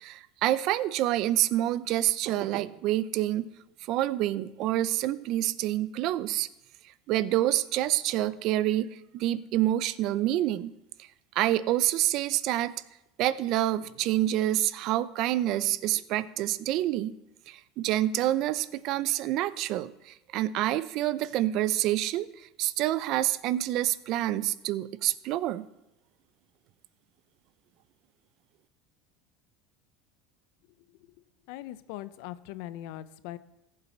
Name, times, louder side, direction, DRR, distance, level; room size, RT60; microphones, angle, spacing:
voice 1, 0.0-3.5 3.9-6.5 7.1-8.9 9.1-10.7 11.4-12.7 13.2-17.2 17.5-22.3 22.6-25.6, right 14 dB, 60° right, 17 dB, 0.6 m, -27 dB
voice 2, 31.5-33.4, left 14 dB, 70° left, 15 dB, 0.6 m, -40 dB
15.0 x 7.5 x 4.4 m, 0.91 s
supercardioid pair, 115°, 0 cm